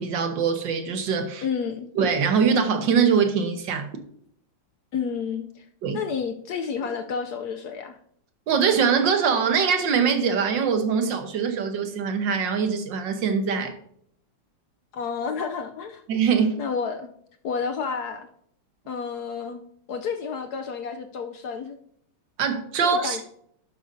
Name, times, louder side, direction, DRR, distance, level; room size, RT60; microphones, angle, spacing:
voice 1, 0.0-1.4 1.9-3.9 5.8-6.0 8.5-13.7 16.1-16.6 22.4-23.2, right 6 dB, 60° right, 1.6 m, -23 dB
voice 2, 1.4-1.9 4.9-5.7 5.9-8.0 14.9-16.0 16.6-17.1 17.4-18.3 18.9-19.6 19.9-21.8 22.8-23.2, left 6 dB, 75° left, 0.9 m, -30 dB
11.5 x 8.2 x 2.7 m
omnidirectional pair, 2.4 m